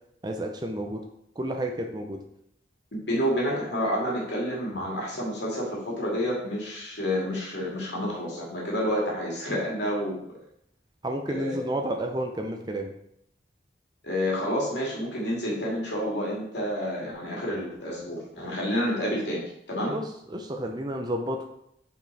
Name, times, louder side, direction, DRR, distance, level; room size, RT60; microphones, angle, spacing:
voice 1, 0.2-1.0 1.4-2.2 11.0-12.9 19.9-21.5, right 1 dB, 25° right, 3 dB, 0.6 m, -31 dB
voice 2, 2.9-10.2 11.3-11.7 14.0-20.0, equal, 75° left, -4 dB, 2.5 m, -29 dB
5.5 x 5.0 x 4.7 m, 0.74 s
head